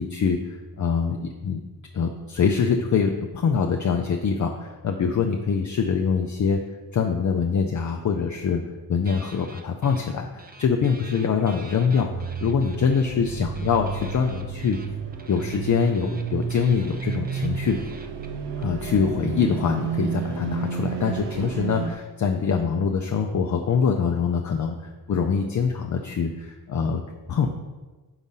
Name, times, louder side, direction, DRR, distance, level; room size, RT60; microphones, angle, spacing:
voice 1, 0.0-1.6 1.9-6.6 6.9-8.6 8.9-12.1 12.4-14.8 15.3-17.8 18.6-27.0 27.3-27.5, left 6 dB, 45° left, 3 dB, 0.5 m, -24 dB
sound 1, 9.0-10.1 10.4-18.6, right 3 dB, 25° right, 0.6 m, -47 dB
sound 2, 12.1-21.9, right 6 dB, 75° right, 0.6 m, -31 dB
4.9 x 4.0 x 5.5 m, 1.2 s
cardioid pair, 70°, 40 cm